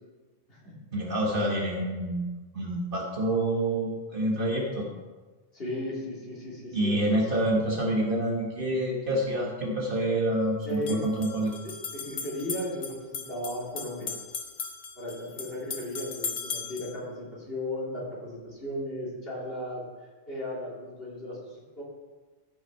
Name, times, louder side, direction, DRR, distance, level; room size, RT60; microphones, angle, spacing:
voice 1, 0.9-2.3 2.5-4.9 6.7-11.5, right 1 dB, 55° right, -1 dB, 1.4 m, -27 dB
voice 2, 5.5-7.2 10.6-11.0 11.6-14.1 15.0-19.8 20.3-21.8, left 1 dB, 60° left, -5 dB, 2.8 m, -36 dB
sound 1, 9.1-9.2 10.7-17.0, left 5 dB, 75° left, 1.2 m, -38 dB
14.5 x 5.7 x 4.5 m, 1.3 s
omnidirectional pair, 1.1 m